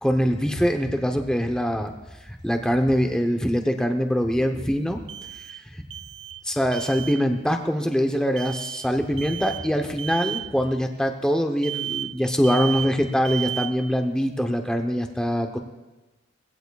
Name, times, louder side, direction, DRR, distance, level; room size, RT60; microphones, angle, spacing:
voice 1, 0.0-1.9 2.3-5.0 6.5-15.6, equal, 5° left, 4 dB, 0.7 m, -23 dB
sound 1, 1.8-1.9 5.1-5.7 5.9-6.5 6.7-7.2 8.4-8.9 9.2-9.7 10.0-10.5 11.6-12.2 12.4-13.0 13.2-13.8, right 12 dB, 60° right, 0.6 m, -33 dB
22.5 x 16.5 x 2.3 m, 1.1 s
head